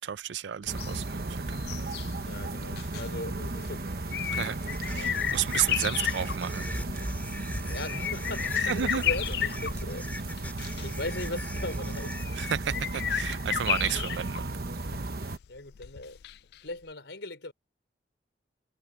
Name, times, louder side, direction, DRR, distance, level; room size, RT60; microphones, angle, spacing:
voice 1, 0.0-1.9 4.3-4.6 4.8-6.7 8.6-9.0 12.3-14.6, right 9 dB, 85° right, 0.4 m, -32 dB
sound 1, 0.7-16.6 16.9-17.0, left 10 dB, 60° left, 0.3 m, -34 dB
sound 2, 0.7-15.4, right 2 dB, 55° right, 1.0 m, -35 dB
voice 2, 2.2-4.0 4.9-5.3 7.7-10.4 10.8-12.5 15.5-16.2 16.6-17.5, left 2 dB, 85° left, 4.8 m, -39 dB
sound 3, 4.6-12.2, left 1 dB, 10° left, 2.4 m, -40 dB
head